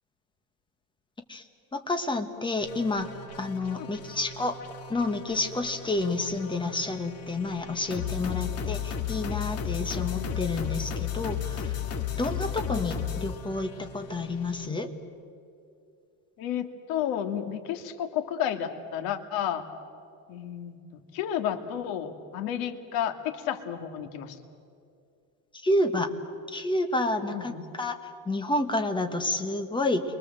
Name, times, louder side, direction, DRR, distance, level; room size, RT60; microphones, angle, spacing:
voice 1, 1.7-3.1 3.4-4.6 4.9-11.8 12.2-14.9 25.5-26.1 26.5-30.0, left 2 dB, 15° left, 7 dB, 1.6 m, -29 dB
sound 1, 2.6-14.7, left 8 dB, 40° left, 2.2 m, -35 dB
voice 2, 16.4-19.7 20.3-24.4 27.3-27.6, left 9 dB, 75° left, 7 dB, 2.2 m, -32 dB
29.5 x 24.0 x 7.8 m, 2.5 s
cardioid pair, 155°, 37 cm